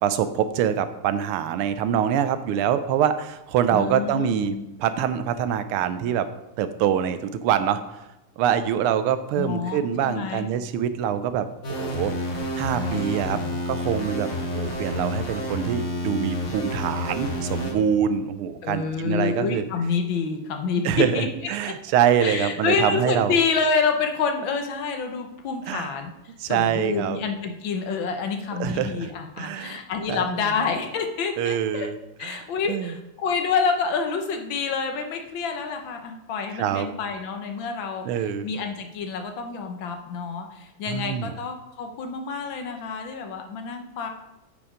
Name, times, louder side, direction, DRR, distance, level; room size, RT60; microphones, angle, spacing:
voice 1, 0.0-4.5 4.8-6.3 6.6-8.0 8.4-12.1 12.6-13.4 13.7-19.6 20.8-23.4 25.7-25.9 26.4-27.2 28.6-29.1 29.4-29.8 30.1-30.5 31.4-32.9 36.5-36.9 38.0-38.5 40.9-41.3, right 9 dB, 90° right, 12 dB, 1.5 m, -25 dB
voice 2, 3.7-4.6 9.4-10.5 12.7-13.6 18.6-21.3 21.6-21.7 22.2-26.1 26.5-31.9 32.2-38.0 38.4-44.1, left 5 dB, 70° left, 5 dB, 1.5 m, -28 dB
sound 1, 11.6-17.7, left 1 dB, 40° left, 1.4 m, -29 dB
8.5 x 5.3 x 5.0 m, 0.93 s
omnidirectional pair, 2.4 m